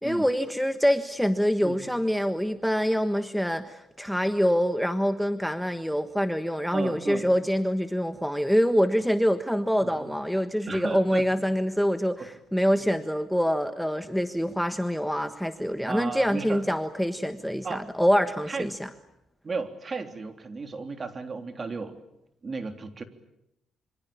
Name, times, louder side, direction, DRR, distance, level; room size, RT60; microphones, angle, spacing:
voice 1, 0.0-18.8, equal, ahead, 9 dB, 1.4 m, -25 dB
voice 2, 6.7-7.3 9.8-10.1 10.7-11.3 12.2-12.3 15.9-16.6 17.6-17.9 18.5-18.7 19.4-22.0 22.4-23.0, right 4 dB, 35° right, 7 dB, 3.4 m, -34 dB
26.0 x 25.5 x 8.6 m, 0.83 s
cardioid pair, 90°, 0 cm